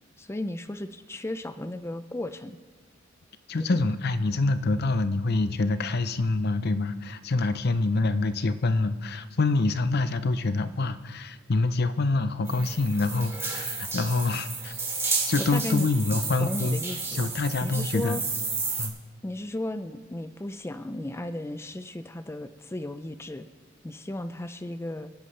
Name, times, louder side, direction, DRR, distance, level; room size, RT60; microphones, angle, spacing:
voice 1, 0.2-2.6 3.6-3.9 15.4-15.9 16.4-17.3 17.6-18.2 19.2-23.5 23.8-25.1, left 1 dB, 15° left, 9 dB, 0.4 m, -35 dB
voice 2, 3.5-14.7 15.3-16.8 17.1-18.2 18.8-19.0, left 3 dB, 55° left, 12 dB, 0.7 m, -26 dB
sound 1, 12.5-18.9, right 4 dB, 15° right, 2.5 m, -32 dB
27.5 x 10.5 x 3.3 m, 1.4 s
head